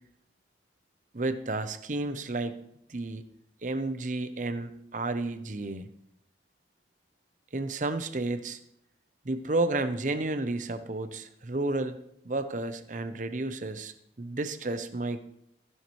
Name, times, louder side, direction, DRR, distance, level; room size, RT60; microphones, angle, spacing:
voice 1, 1.1-2.6 2.9-3.2 3.6-5.9 7.5-8.6 9.2-12.0 12.2-15.2, right 2 dB, 45° right, 11 dB, 0.8 m, -31 dB
15.0 x 11.0 x 3.2 m, 0.75 s
head